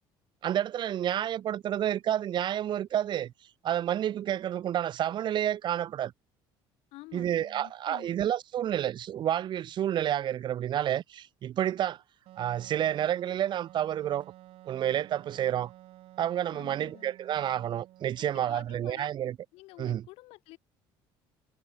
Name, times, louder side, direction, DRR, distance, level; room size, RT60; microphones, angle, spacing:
voice 1, 0.4-3.3 3.6-6.1 7.1-12.0 12.4-14.3 14.7-15.7 16.2-19.4 19.8-20.0, right 11 dB, 50° right, 0.9 m, -30 dB
voice 2, 6.9-8.2 16.5-17.1 18.2-19.1 19.5-20.6, left 20 dB, 75° left, 6.1 m, -50 dB
Wind instrument woodwind instrument, 12.3-18.7, right 15 dB, 65° right, 7.0 m, -53 dB
supercardioid pair, 100°, 10 cm